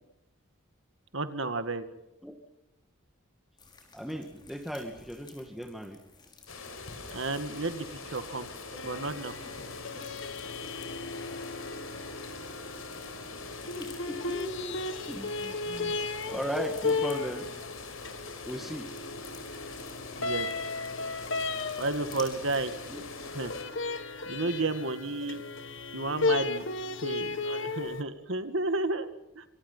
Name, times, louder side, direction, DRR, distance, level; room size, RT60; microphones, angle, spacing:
voice 1, 1.1-1.8 7.1-8.5 8.8-9.3 20.2-20.5 21.8-22.7 23.3-23.5 24.3-25.4 25.9-26.7 27.0-29.4, right 2 dB, 65° right, 10 dB, 2.0 m, -32 dB
sound 1, 3.6-22.6, left 4 dB, 20° left, 5.3 m, -55 dB
voice 2, 3.9-6.0 9.9-10.0 13.7-14.8 15.1-16.0 16.3-17.5 18.4-18.9 22.9-23.0, equal, ahead, 4 dB, 2.0 m, -37 dB
sound 2, 6.5-23.6, left 3 dB, 85° left, 6.1 m, -43 dB
sound 3, 8.8-28.0, left 3 dB, 65° left, 1.9 m, -35 dB
28.0 x 25.5 x 5.6 m, 0.88 s
head